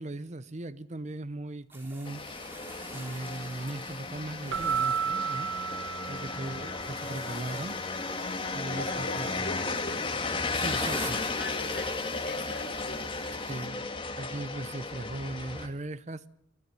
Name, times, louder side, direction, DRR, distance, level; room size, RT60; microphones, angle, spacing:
voice 1, 0.0-2.2 2.9-5.5 6.1-7.8 8.5-9.5 10.5-11.2 13.3-13.9 14.1-16.2, right 2 dB, 40° right, 0.7 m, -38 dB
sound 1, 1.7-13.7, right 1 dB, 10° right, 4.2 m, -47 dB
sound 2, 2.0-15.7, left 3 dB, 30° left, 2.1 m, -34 dB
Keyboard (musical), 4.5-6.9, right 7 dB, 90° right, 1.3 m, -32 dB
voice 2, 6.3-6.8 8.7-10.1 11.3-13.9, left 2 dB, 60° left, 5.0 m, -42 dB
28.5 x 11.0 x 9.2 m
head